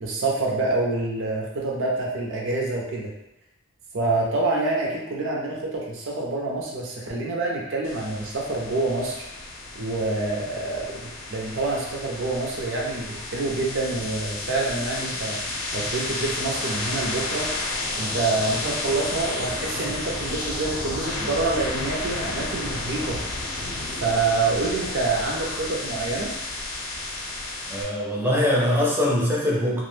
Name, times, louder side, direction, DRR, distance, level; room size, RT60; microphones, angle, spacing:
voice 1, 0.0-3.1 3.9-9.2 9.7-15.4 15.7-17.5 17.9-23.2 24.0-26.3, right 3 dB, 65° right, -2 dB, 0.5 m, -27 dB
sound 1, 7.8-27.8, left 2 dB, 80° left, 0.5 m, -32 dB
voice 2, 27.7-29.8, left 1 dB, 10° right, -3 dB, 0.4 m, -22 dB
2.4 x 2.0 x 3.1 m, 0.91 s
head